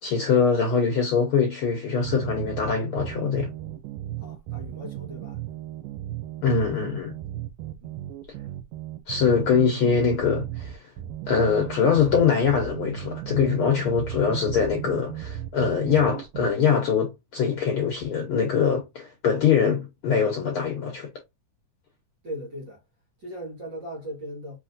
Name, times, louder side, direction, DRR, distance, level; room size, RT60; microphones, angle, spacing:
voice 1, 0.0-3.5 6.4-7.1 9.1-10.9 11.3-21.1, left 6 dB, 90° left, 1.1 m, -23 dB
sound 1, 2.0-16.5, right 13 dB, 85° right, 2.2 m, -35 dB
voice 2, 4.2-5.4 7.8-8.0 22.2-22.8 23.2-24.6, equal, 50° right, 1.5 m, -38 dB
5.9 x 2.8 x 2.5 m
omnidirectional pair, 3.7 m